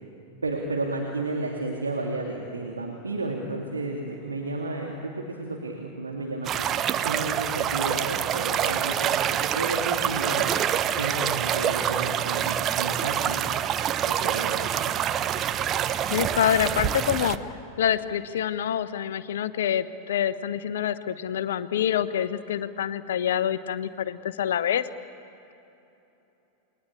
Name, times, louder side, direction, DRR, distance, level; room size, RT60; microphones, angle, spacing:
voice 1, 0.4-6.7 7.0-10.5 11.0-13.6 14.2-14.9, right 2 dB, 75° right, 0 dB, 2.6 m, -32 dB
sound 1, 6.4-17.4, right 10 dB, 30° right, 0.9 m, -26 dB
voice 2, 16.1-17.4 17.8-24.9, left 9 dB, 60° left, 14 dB, 1.0 m, -26 dB
29.0 x 21.0 x 8.6 m, 2.9 s
figure-of-eight pair, 90°, 0 cm